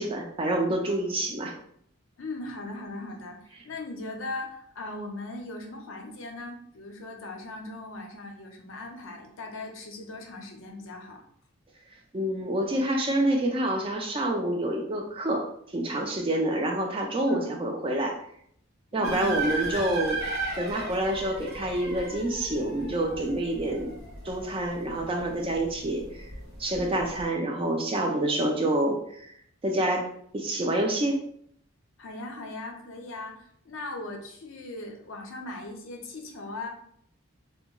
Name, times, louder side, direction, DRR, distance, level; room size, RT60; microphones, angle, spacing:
voice 1, 0.0-1.6 12.1-15.4 15.7-18.2 18.9-23.9 24.2-26.3 26.6-29.3 29.6-30.0 30.3-31.2, right 1 dB, 25° right, 2 dB, 0.3 m, -27 dB
voice 2, 2.2-11.2 17.3-17.5 18.9-19.4 32.0-36.7, left 2 dB, 65° left, 3 dB, 0.5 m, -39 dB
sound 1, 19.0-27.2, right 2 dB, 80° right, 1.2 m, -36 dB
2.9 x 2.2 x 2.2 m, 0.67 s
head